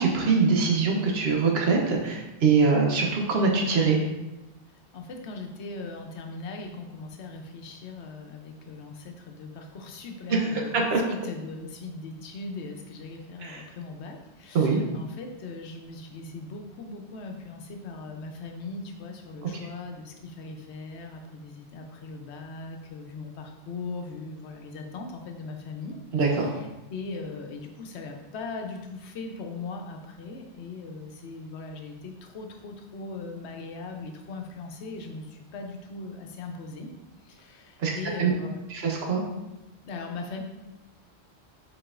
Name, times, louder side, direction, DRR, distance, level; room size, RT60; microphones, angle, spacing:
voice 1, 0.0-4.0 10.3-11.0 13.4-13.7 14.5-14.8 26.1-26.6 37.8-38.3 38.7-39.2, right 4 dB, 70° right, 0 dB, 1.1 m, -23 dB
voice 2, 4.9-26.0 26.3-26.6 26.9-36.9 37.2-38.6 39.8-40.4, left 3 dB, 80° left, 3 dB, 0.9 m, -39 dB
4.8 x 4.4 x 2.4 m, 1.0 s
omnidirectional pair, 1.1 m